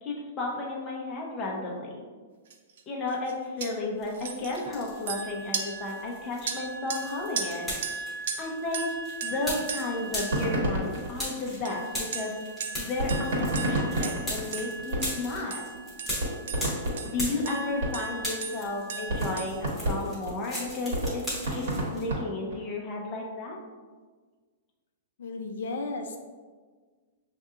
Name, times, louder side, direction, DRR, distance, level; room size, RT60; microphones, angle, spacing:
voice 1, 0.0-2.1 2.9-7.7 8.4-8.9 9.2-12.3 12.8-15.8 17.0-21.6 21.9-23.6, left 2 dB, 15° left, -2 dB, 0.5 m, -33 dB
sound 1, 2.5-2.8 3.1-3.3 3.6-3.7 4.1-11.2 11.6-19.6, right 5 dB, 55° right, 0.4 m, -37 dB
sound 2, 4.0-5.2 5.5-17.9 18.2-22.1, equal, ahead, 0.9 m, -38 dB
sound 3, 10.3-12.0 13.0-15.4 15.8-15.9 16.2-18.3 18.6-18.7 19.1-22.7, right 1 dB, 70° right, 1.4 m, -30 dB
voice 2, 25.2-26.2, left 3 dB, 75° left, 4 dB, 0.4 m, -34 dB
6.7 x 2.7 x 2.4 m, 1.5 s
supercardioid pair, 180°, 0 cm